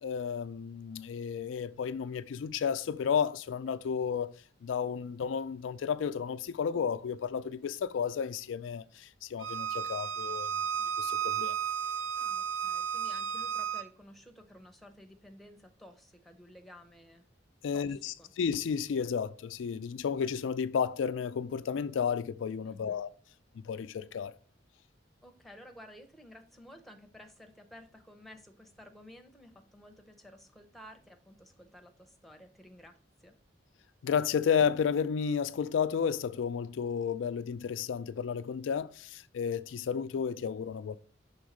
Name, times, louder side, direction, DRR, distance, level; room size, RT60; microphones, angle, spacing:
voice 1, 0.0-4.3 4.6-10.5 11.0-11.6 17.6-23.1 23.6-24.3 34.0-41.0, left 7 dB, 90° left, 0.4 m, -32 dB
Bowed string instrument, 9.4-13.8, right 8 dB, 75° right, 0.5 m, -33 dB
voice 2, 12.2-17.3 17.7-18.3 22.7-23.0 25.2-33.3, left 1 dB, ahead, 0.8 m, -54 dB
6.2 x 3.5 x 4.9 m
head